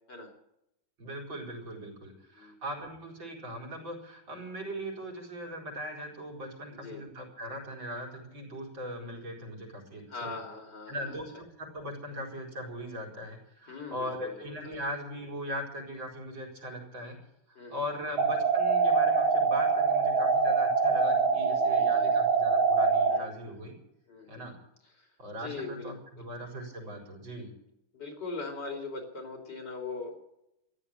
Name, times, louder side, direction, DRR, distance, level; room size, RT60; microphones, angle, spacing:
voice 1, 1.0-10.4 10.9-17.2 17.7-23.7 24.3-24.6 25.2-27.5, equal, 65° right, 1 dB, 5.1 m, -39 dB
voice 2, 6.7-7.0 10.1-11.2 13.7-14.8 17.6-17.8 21.4-22.3 23.1-23.6 24.1-24.5 25.0-25.1 25.4-26.3 27.9-30.2, left 3 dB, 55° left, 3 dB, 3.9 m, -41 dB
sound 1, 18.2-23.2, right 4 dB, 80° right, 2.5 m, -24 dB
14.0 x 11.0 x 8.8 m, 0.82 s
omnidirectional pair, 2.2 m